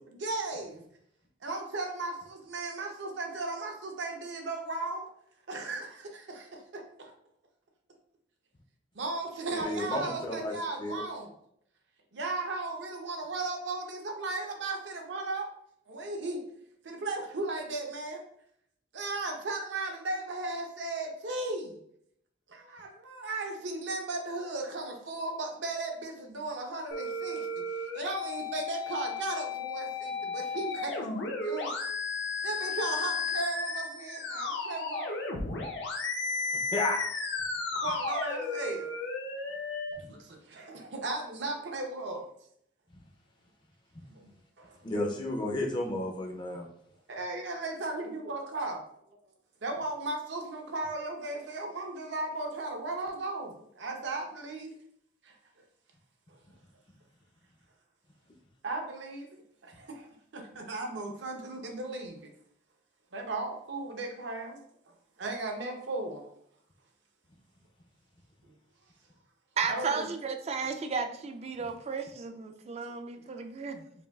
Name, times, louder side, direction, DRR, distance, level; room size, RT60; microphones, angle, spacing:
voice 1, 0.1-0.8 1.4-5.1 5.5-7.1 8.9-11.3 12.1-15.5 15.9-16.4 16.8-18.2 18.9-21.8 22.5-27.6 27.9-31.1 31.4-31.8 32.4-35.1 37.7-38.9 40.1-42.3 44.1-44.3 44.6-44.8 47.1-48.8 49.6-54.7 55.2-55.4 56.3-56.4 58.6-62.3 63.1-64.6 65.2-66.2 69.7-70.1 72.7-72.8 73.2-73.3, right 2 dB, 75° right, 2 dB, 0.7 m, -36 dB
voice 2, 9.5-11.0 36.7-37.0 44.8-46.7, left 1 dB, 25° left, 1 dB, 0.4 m, -32 dB
sound 1, 26.9-39.9, left 3 dB, 70° left, 0.6 m, -34 dB
voice 3, 69.6-73.9, right 5 dB, 35° right, 7 dB, 0.3 m, -34 dB
5.3 x 2.3 x 2.3 m, 0.70 s
head